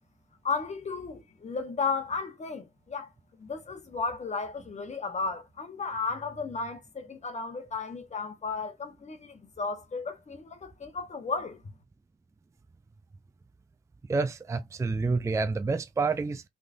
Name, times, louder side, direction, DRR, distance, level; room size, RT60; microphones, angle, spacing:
voice 1, 0.4-3.1 3.4-11.6, left 4 dB, 35° left, 1.3 m, -34 dB
voice 2, 14.1-16.4, right 4 dB, 15° right, 0.4 m, -28 dB
3.7 x 3.2 x 2.5 m
cardioid pair, 90°, 20 cm